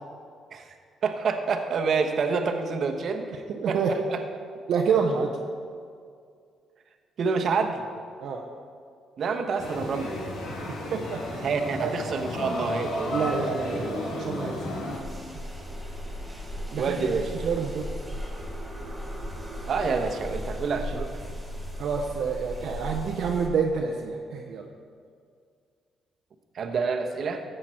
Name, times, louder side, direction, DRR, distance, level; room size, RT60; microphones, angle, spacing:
voice 1, 1.0-4.2 7.2-7.8 9.2-10.2 11.4-13.4 16.7-17.3 19.7-21.2 26.5-27.4, right 5 dB, 60° right, 5 dB, 1.1 m, -28 dB
voice 2, 3.5-3.9 4.7-5.3 8.2-8.4 10.9-11.4 11.8-11.9 13.1-14.5 16.7-17.0 17.4-17.9 21.8-24.7, right 6 dB, 75° right, 1 dB, 0.8 m, -28 dB
sound 1, 9.6-15.0, left 1 dB, 80° left, 2.2 m, -33 dB
sound 2, 14.9-23.5, equal, 10° right, 2.7 m, -36 dB
13.5 x 7.7 x 4.5 m, 2.2 s
cardioid pair, 90°, 0 cm